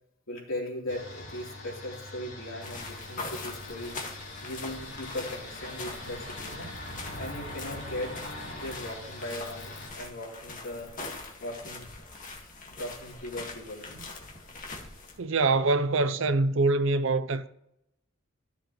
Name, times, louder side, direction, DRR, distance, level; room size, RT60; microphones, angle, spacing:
voice 1, 0.3-4.1 4.4-6.7 7.2-8.2 8.5-10.9 11.4-11.9 12.6-14.0, left 1 dB, 80° left, 3.5 m, -38 dB
sound 1, 0.9-9.9, left 2 dB, 60° left, 4.0 m, -42 dB
sound 2, 2.6-15.2, left 3 dB, 40° left, 2.0 m, -42 dB
voice 2, 15.2-17.5, right 3 dB, 65° right, 0.6 m, -24 dB
14.0 x 7.0 x 3.1 m
head